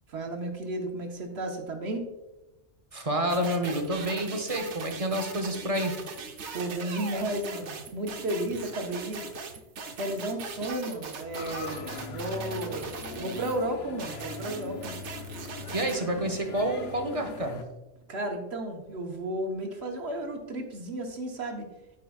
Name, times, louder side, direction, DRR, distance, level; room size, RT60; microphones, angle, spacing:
voice 1, 0.1-2.1 6.5-9.3 10.0-14.9 18.1-21.7, right 1 dB, 70° right, 3 dB, 1.4 m, -33 dB
voice 2, 2.9-6.0 15.7-17.7, right 1 dB, 35° right, 4 dB, 0.8 m, -29 dB
sound 1, 3.3-13.6 14.0-16.0, right 5 dB, 90° right, 1.1 m, -40 dB
sound 2, 11.3-17.6, left 4 dB, 65° left, 1.0 m, -41 dB
12.5 x 4.8 x 2.4 m, 1.0 s
omnidirectional pair, 1.2 m